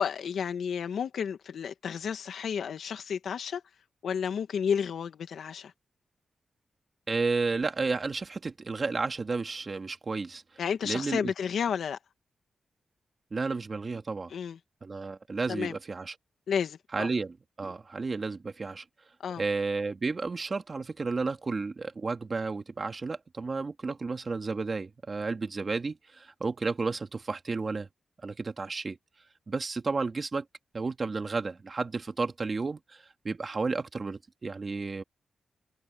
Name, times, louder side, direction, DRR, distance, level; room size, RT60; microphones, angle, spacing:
voice 1, 0.0-3.6 4.0-5.7 10.6-12.0 14.3-14.6 15.5-15.7 16.5-17.1 19.2-19.4, left 7 dB, 80° left, 1.8 m, -31 dB
voice 2, 7.1-10.4 10.8-11.3 13.3-14.3 14.8-16.1 16.9-18.8 19.4-27.9 28.2-29.0 29.5-30.4 30.7-35.0, right 4 dB, 40° right, 1.9 m, -32 dB
cardioid pair, 75°, 0 cm